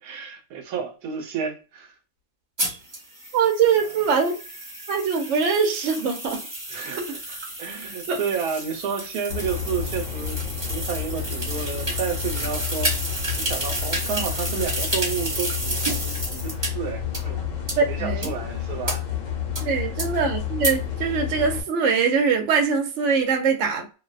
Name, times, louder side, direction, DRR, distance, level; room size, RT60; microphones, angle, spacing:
voice 1, 0.0-1.9 6.7-17.4 17.9-19.1, right 6 dB, 90° right, 1.1 m, -31 dB
sound 1, 2.6-16.7 17.1-17.2 17.7-17.8 18.2-18.3 18.9-19.0 19.6-19.7 20.0-20.1 20.6-20.7, right 1 dB, 35° right, 1.1 m, -31 dB
voice 2, 3.3-4.3 4.9-6.4 7.0-7.1 8.1-8.2 17.8-18.3 19.6-24.0, right 6 dB, 65° right, 0.9 m, -22 dB
sound 2, 9.3-21.6, left 9 dB, 65° left, 1.0 m, -30 dB
2.7 x 2.1 x 2.3 m
omnidirectional pair, 1.5 m